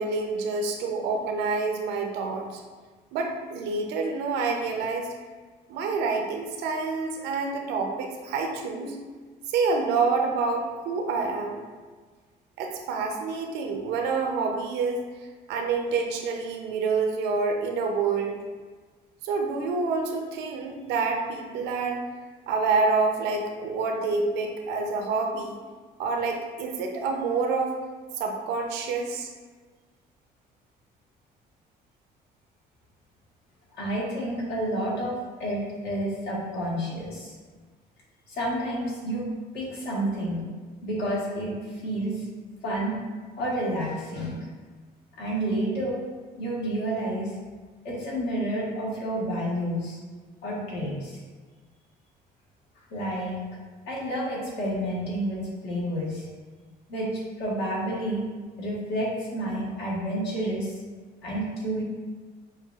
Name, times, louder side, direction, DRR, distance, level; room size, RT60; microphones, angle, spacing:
voice 1, 0.0-2.6 3.1-5.1 5.7-9.0 9.5-11.6 12.6-15.0 15.5-18.3 19.2-22.0 22.5-25.6 26.0-27.8 28.2-29.3, right 4 dB, 90° right, 3 dB, 0.6 m, -27 dB
voice 2, 33.8-37.3 38.3-39.3 39.5-40.4 40.8-42.2 42.6-42.9 43.4-44.4 45.2-46.0 46.4-47.3 47.8-50.0 50.4-51.2 52.9-53.4 53.9-56.3 56.9-58.3 58.6-60.7 61.2-61.8, right 1 dB, 75° left, -5 dB, 1.4 m, -30 dB
6.4 x 2.3 x 2.4 m, 1.4 s
cardioid pair, 110°, 17 cm